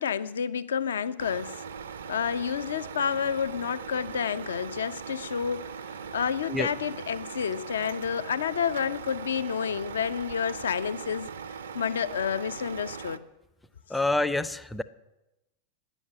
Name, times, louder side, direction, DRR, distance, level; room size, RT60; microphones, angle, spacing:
voice 1, 0.0-1.6 2.1-5.8 6.1-11.3 11.7-13.2, left 7 dB, 65° left, 0.4 m, -29 dB
Truck, 1.2-13.2, right 6 dB, 65° right, 0.4 m, -40 dB
voice 2, 13.9-14.8, left 2 dB, 5° left, 0.4 m, -27 dB
9.8 x 7.1 x 6.9 m
figure-of-eight pair, 90°, 0 cm